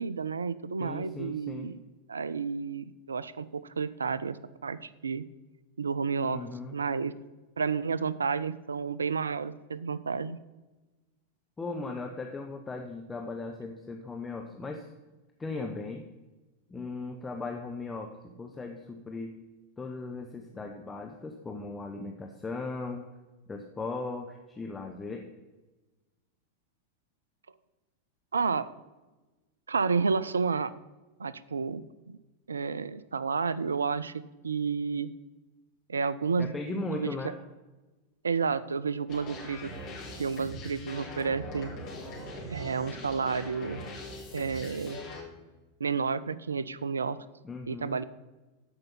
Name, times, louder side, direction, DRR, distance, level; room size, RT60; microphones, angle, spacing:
voice 1, 0.0-1.8 2.1-4.4 4.6-5.2 5.8-6.5 6.7-7.1 7.6-10.4 28.3-28.7 29.7-30.7 31.2-32.2 32.5-35.1 35.9-36.5 37.0-37.1 38.2-39.7 40.2-41.7 42.5-43.9 44.3-45.0 45.8-47.2 47.7-48.0, right 5 dB, 75° right, 18 dB, 0.4 m, -31 dB
voice 2, 0.8-1.7 6.2-6.7 11.6-14.9 15.4-16.1 16.7-19.4 19.8-23.1 23.5-25.3 36.4-37.4 47.4-48.0, left 3 dB, 15° left, 3 dB, 0.8 m, -37 dB
sound 1, 39.1-45.2, left 1 dB, 40° left, 3.2 m, -41 dB
13.5 x 5.3 x 5.5 m, 1.2 s
figure-of-eight pair, 90°, 0 cm